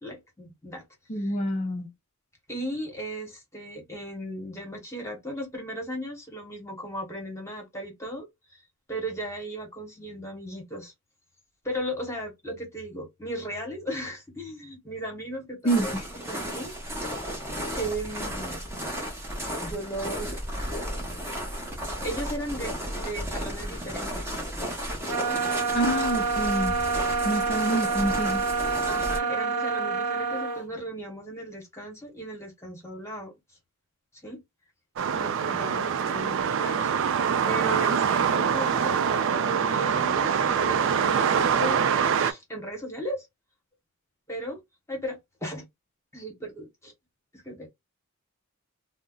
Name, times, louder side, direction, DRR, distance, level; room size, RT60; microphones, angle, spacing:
voice 1, 0.0-0.8 1.2-1.3 2.5-8.6 8.9-10.9 11.6-15.9 16.3-16.7 17.8-18.6 19.6-20.5 21.9-24.4 25.1-25.4 28.9-33.3 34.2-34.4 35.1-36.9 37.2-41.8 42.2-43.3 44.3-44.6 44.9-45.7 46.1-46.9 47.4-47.7, right 1 dB, 10° left, 1.0 m, -36 dB
voice 2, 1.1-1.9 15.6-16.1 25.7-26.7 27.2-28.5, right 1 dB, 30° left, 0.4 m, -27 dB
sound 1, 15.7-29.2, equal, 10° right, 0.8 m, -34 dB
sound 2, 25.1-30.6, right 5 dB, 80° right, 0.8 m, -27 dB
sound 3, 35.0-42.3, right 7 dB, 55° right, 0.3 m, -24 dB
2.5 x 2.0 x 3.6 m
head